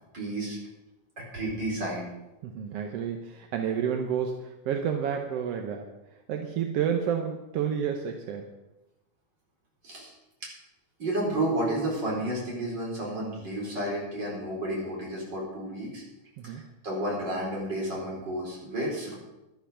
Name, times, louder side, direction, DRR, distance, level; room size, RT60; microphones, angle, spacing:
voice 1, 0.1-0.6 1.3-2.1 9.8-10.1 11.0-16.0 16.4-19.2, right 1 dB, 35° right, -3 dB, 4.9 m, -31 dB
voice 2, 2.4-5.9 6.3-8.5 16.4-16.7, right 8 dB, 65° right, 4 dB, 1.6 m, -30 dB
12.0 x 12.0 x 5.8 m, 0.99 s
omnidirectional pair, 3.6 m